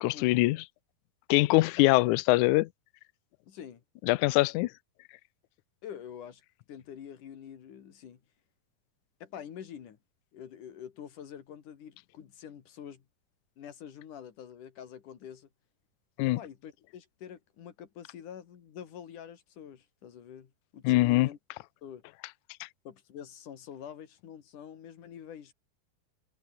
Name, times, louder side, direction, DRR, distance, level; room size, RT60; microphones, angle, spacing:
voice 1, 0.0-0.6 1.3-2.7 4.1-4.7 16.2-16.4 20.8-21.3 22.6-22.7, left 19 dB, 85° left, 1.7 m, -23 dB
voice 2, 3.5-3.8 5.8-6.4 6.7-8.2 9.2-10.0 10.3-13.0 13.6-15.5 16.2-21.4 21.8-22.0 22.9-25.5, left 9 dB, 60° left, 3.7 m, -46 dB
omnidirectional pair, 4.3 m